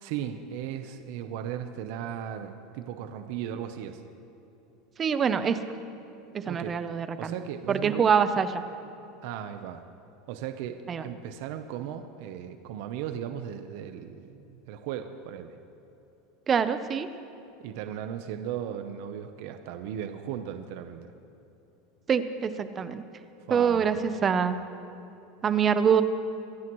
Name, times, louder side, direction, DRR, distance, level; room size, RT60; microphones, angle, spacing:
voice 1, 0.0-4.0 6.5-6.8 7.2-8.1 9.2-9.8 10.3-15.6 17.6-21.1 23.5-24.2, right 9 dB, 60° right, 8 dB, 0.8 m, -37 dB
voice 2, 5.0-5.6 6.3-7.3 7.7-8.6 10.9-11.1 16.5-17.1 22.1-23.0 23.5-24.6 25.4-26.0, right 7 dB, 25° right, 11 dB, 0.7 m, -25 dB
24.0 x 15.5 x 3.1 m, 3.0 s
supercardioid pair, 150°, 0 cm